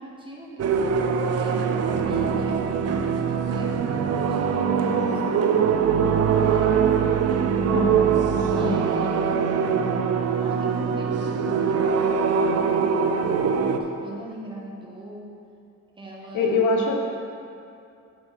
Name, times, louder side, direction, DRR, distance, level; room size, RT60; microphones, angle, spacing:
voice 1, 0.0-5.6 6.1-7.4 8.2-9.7 10.4-12.9 13.7-15.3 16.0-16.6, equal, 15° right, -3 dB, 1.4 m, -40 dB
sound 1, 0.6-13.8, right 6 dB, 55° right, 0.5 m, -22 dB
voice 2, 7.7-8.2 8.6-9.0 16.3-16.9, left 3 dB, 80° left, 1 dB, 1.0 m, -24 dB
7.9 x 4.3 x 4.2 m, 2.5 s
cardioid pair, 90°, 30 cm